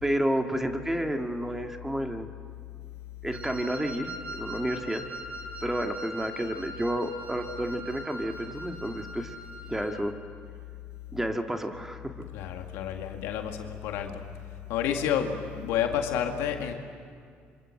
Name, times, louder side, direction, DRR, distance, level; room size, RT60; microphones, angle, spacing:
voice 1, 0.0-2.3 3.2-5.0 5.6-9.4 9.7-10.1 11.1-12.1, right 1 dB, 10° right, 4 dB, 2.1 m, -30 dB
Wind instrument woodwind instrument, 3.3-10.0, right 1 dB, 35° right, 5.3 m, -41 dB
voice 2, 12.3-14.2 14.7-16.7, left 8 dB, 90° left, 4 dB, 2.1 m, -30 dB
26.5 x 26.0 x 7.8 m, 2.2 s
cardioid pair, 85°, 4 cm